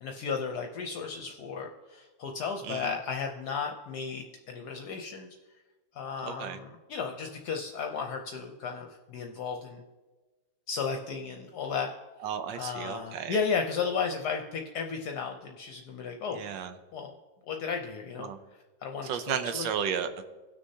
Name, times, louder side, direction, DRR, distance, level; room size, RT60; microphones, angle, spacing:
voice 1, 0.0-5.3 6.0-9.8 10.7-11.9 12.6-16.4 16.9-17.1 17.5-18.3 18.8-19.7, left 5 dB, 70° left, 3 dB, 1.2 m, -34 dB
voice 2, 2.6-3.0 6.2-6.6 12.2-13.4 16.3-16.7 18.2-18.4 19.0-20.2, right 8 dB, 85° right, 9 dB, 1.4 m, -33 dB
17.5 x 6.4 x 2.8 m, 1.2 s
omnidirectional pair, 1.9 m